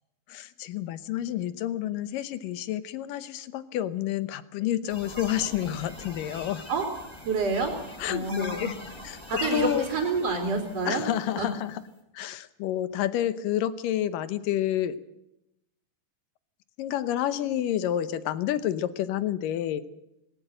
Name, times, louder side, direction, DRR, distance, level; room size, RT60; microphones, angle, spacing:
voice 1, 0.3-6.7 8.0-8.8 9.0-9.2 9.5-9.9 10.8-11.8 12.1-15.0 16.8-19.8, left 11 dB, 75° left, 13 dB, 2.5 m, -29 dB
sound 1, 4.9-11.8, left 2 dB, 5° left, 4.1 m, -42 dB
voice 2, 7.2-7.7 8.0-8.7 9.3-11.0 11.4-11.5, right 3 dB, 45° right, 1 dB, 3.9 m, -28 dB
19.5 x 17.5 x 7.6 m, 0.87 s
omnidirectional pair, 4.2 m